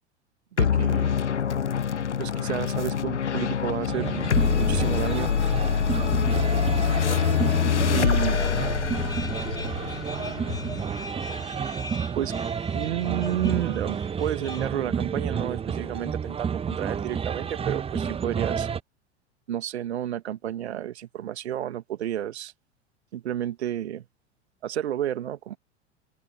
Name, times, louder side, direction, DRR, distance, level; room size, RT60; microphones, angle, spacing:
voice 1, 0.5-1.2 2.2-4.2 4.5-5.3 7.9-8.4 12.1-12.4 12.7-18.7 19.5-22.5 23.1-24.0 24.6-25.6, right 11 dB, 65° right, 1.6 m, -31 dB
sound 1, 0.6-11.4, left 7 dB, 80° left, 0.8 m, -25 dB
voice 2, 2.4-3.0 5.3-5.5 7.1-9.0 9.5-10.8, left 23 dB, 40° left, 3.1 m, -44 dB
sound 2, 3.9-18.8, right 7 dB, 15° right, 1.2 m, -30 dB
sound 3, 8.3-14.7, left 3 dB, 10° left, 5.4 m, -42 dB
figure-of-eight pair, 90°, 35 cm